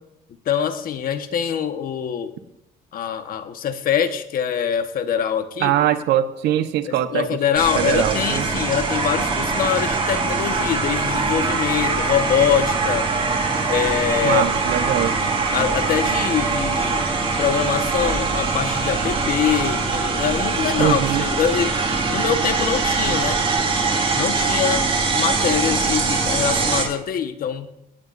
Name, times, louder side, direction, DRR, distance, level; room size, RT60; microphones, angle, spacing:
voice 1, 0.4-2.3 2.9-5.8 6.8-13.1 13.7-14.6 15.5-21.7 22.1-23.4 24.1-24.9 25.1-27.7, left 8 dB, 55° left, 8 dB, 1.4 m, -24 dB
voice 2, 5.6-7.3 7.7-8.5 14.2-15.2 20.8-21.2, right 11 dB, 85° right, 10 dB, 1.1 m, -21 dB
sound 1, 7.6-26.8, right 4 dB, 30° right, 4.1 m, -22 dB
22.5 x 17.5 x 2.7 m, 0.86 s
cardioid pair, 110°, 17 cm